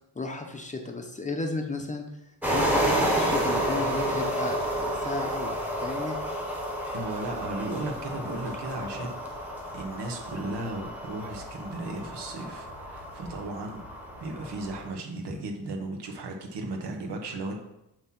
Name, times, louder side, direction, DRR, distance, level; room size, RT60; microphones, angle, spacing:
voice 1, 0.2-2.0 2.5-6.2, left 3 dB, 20° left, 3 dB, 0.7 m, -34 dB
sound 1, 2.4-14.9, equal, 5° right, 1.1 m, -30 dB
voice 2, 6.9-9.2 9.7-17.6, right 2 dB, 80° right, 3 dB, 1.2 m, -35 dB
7.8 x 3.0 x 5.9 m, 0.88 s
wide cardioid pair, 150°, 41 cm